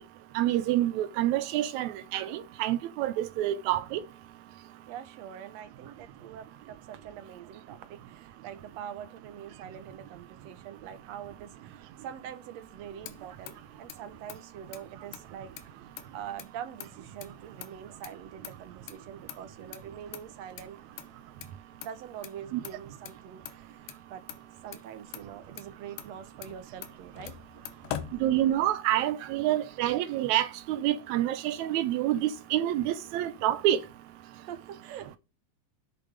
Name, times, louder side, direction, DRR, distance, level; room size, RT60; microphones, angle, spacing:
voice 1, 0.3-4.0 22.5-22.6 28.2-33.8, right 13 dB, 85° right, 1.6 m, -27 dB
voice 2, 4.9-20.8 21.8-24.2 24.6-27.4 34.4-35.2, right 9 dB, 65° right, 1.9 m, -44 dB
Motor vehicle (road), 12.6-28.9, left 11 dB, 85° left, 2.8 m, -46 dB
8.5 x 6.7 x 5.1 m
omnidirectional pair, 4.1 m